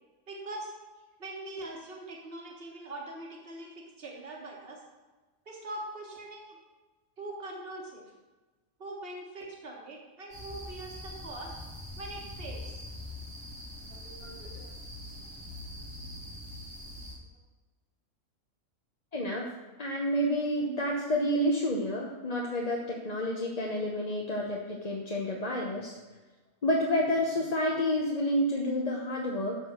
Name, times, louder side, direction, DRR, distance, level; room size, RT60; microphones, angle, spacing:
voice 1, 0.3-0.7 1.2-4.8 5.5-6.6 7.2-8.1 8.8-11.5 12.0-12.8 13.9-14.7, right 2 dB, 50° right, -1 dB, 1.9 m, -42 dB
sound 1, 10.3-17.1, left 1 dB, 85° right, 3.0 m, -43 dB
voice 2, 19.1-19.5 19.8-26.0 26.6-29.6, equal, 35° left, -2 dB, 1.1 m, -29 dB
13.5 x 4.6 x 6.7 m, 1.2 s
omnidirectional pair, 1.3 m